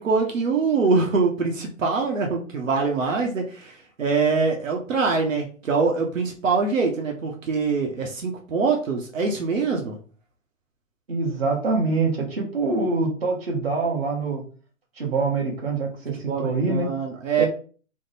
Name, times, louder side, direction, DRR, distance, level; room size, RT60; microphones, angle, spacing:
voice 1, 0.0-10.0 16.3-17.5, right 4 dB, 80° right, 1 dB, 0.9 m, -24 dB
voice 2, 11.1-14.4 15.0-16.9 17.4-17.5, right 3 dB, 50° right, -1 dB, 1.3 m, -25 dB
3.6 x 2.1 x 4.0 m, 0.41 s
hypercardioid pair, 180°, 38 cm